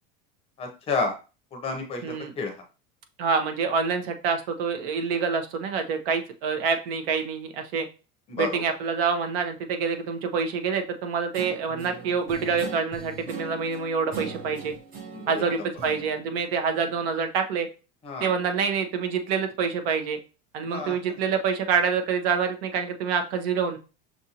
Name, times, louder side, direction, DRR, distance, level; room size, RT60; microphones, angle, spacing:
voice 1, 0.6-1.2 1.5-2.6 8.3-8.6 15.1-15.4 18.0-18.3 20.7-21.0, left 3 dB, 20° left, 3 dB, 0.6 m, -31 dB
voice 2, 3.2-7.9 8.4-14.7 15.3-17.7 18.2-20.2 20.5-23.8, right 5 dB, 75° right, 6 dB, 0.9 m, -26 dB
Guitar, 11.3-17.2, right 4 dB, 30° right, 0.7 m, -40 dB
6.0 x 2.6 x 2.8 m, 0.32 s
cardioid pair, 180°, 29 cm